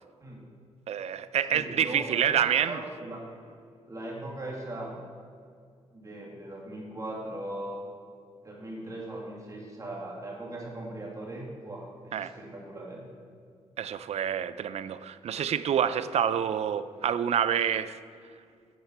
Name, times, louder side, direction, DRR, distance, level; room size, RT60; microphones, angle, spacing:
voice 1, 0.2-0.5 1.5-3.3 3.9-5.0 5.9-7.8 8.4-13.0, right 1 dB, 30° right, -3 dB, 2.4 m, -39 dB
voice 2, 0.9-2.8 12.1-12.3 13.8-18.0, right 9 dB, 70° right, 13 dB, 0.5 m, -27 dB
9.3 x 6.5 x 7.3 m, 2.2 s
cardioid pair, 85°, 11 cm